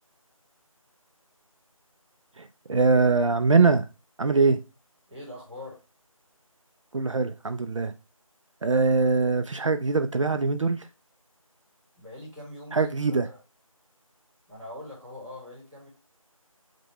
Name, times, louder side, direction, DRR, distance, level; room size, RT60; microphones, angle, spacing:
voice 1, 2.4-3.9 4.2-4.6 6.9-7.9 8.6-10.9 12.7-13.3, right 4 dB, 60° right, 0.4 m, -22 dB
voice 2, 5.1-5.8 12.0-13.4 14.5-15.9, left 1 dB, 5° right, 1.1 m, -43 dB
5.0 x 2.2 x 4.3 m
figure-of-eight pair, 170°, 18 cm